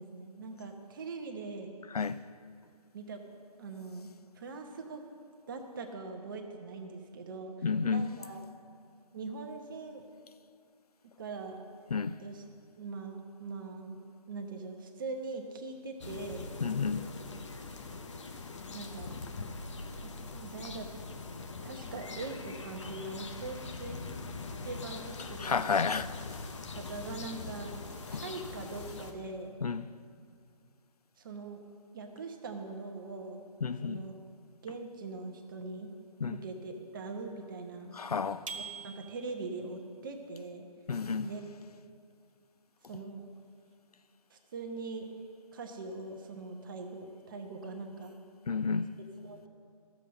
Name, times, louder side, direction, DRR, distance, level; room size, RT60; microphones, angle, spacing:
voice 1, 0.0-1.7 2.9-3.2 3.6-5.0 5.5-8.5 9.1-10.0 11.2-11.6 12.2-12.4 12.8-14.0 14.3-16.5 18.7-19.2 19.9-20.9 21.6-24.0 24.6-25.7 26.7-27.8 28.1-29.6 31.2-31.6 31.9-33.5 33.8-34.2 34.6-35.9 36.3-37.9 38.5-40.6 41.2-41.5 42.9-43.3 44.3-45.1 45.5-48.2 49.0-49.5, right 3 dB, 35° right, 1.0 m, -42 dB
voice 2, 7.6-8.1 11.9-12.2 16.6-17.1 25.4-26.4 28.1-28.2 29.6-29.8 33.6-34.0 36.2-36.4 37.9-38.4 40.9-41.3 48.5-48.9, left 5 dB, 75° left, 0.5 m, -31 dB
sound 1, 16.0-29.1, left 3 dB, 50° left, 0.9 m, -42 dB
sound 2, 38.5-39.6, right 5 dB, 55° right, 1.1 m, -43 dB
13.0 x 7.2 x 6.5 m
figure-of-eight pair, 150°, 20 cm